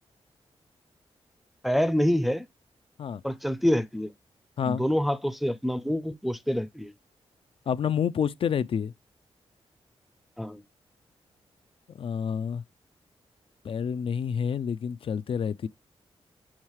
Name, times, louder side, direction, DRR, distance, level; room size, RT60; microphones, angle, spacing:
voice 1, 1.6-2.4 3.2-4.1 4.7-6.9 10.4-10.6, equal, ahead, 0.5 m, -26 dB
voice 2, 7.7-8.9 12.0-12.6 13.6-15.7, left 7 dB, 60° left, 0.4 m, -28 dB
7.3 x 4.4 x 3.0 m
wide cardioid pair, 125°, 11 cm